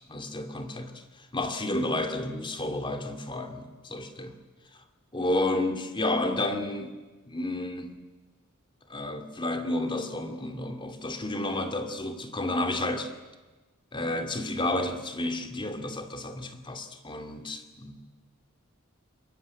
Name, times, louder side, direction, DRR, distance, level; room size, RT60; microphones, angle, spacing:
voice 1, 0.1-0.9 1.2-4.3 5.1-7.0 7.3-8.0 8.9-13.1 13.9-18.0, left 1 dB, 25° left, 2.5 m, -31 dB
26.0 x 22.5 x 9.9 m
head